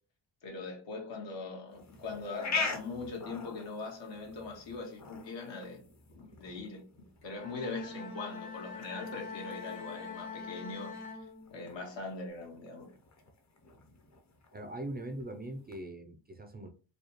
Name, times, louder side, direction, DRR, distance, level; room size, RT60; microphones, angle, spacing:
voice 1, 0.4-5.8 6.1-6.8 7.2-10.9 11.5-12.9, left 3 dB, 75° left, 1.5 m, -41 dB
sound 1, 1.7-15.8, left 4 dB, 40° left, 0.8 m, -44 dB
Bowed string instrument, 7.2-11.9, left 4 dB, 55° left, 1.3 m, -44 dB
voice 2, 14.5-16.7, right 1 dB, 25° right, 0.4 m, -41 dB
4.8 x 2.3 x 2.9 m
wide cardioid pair, 130°, 45 cm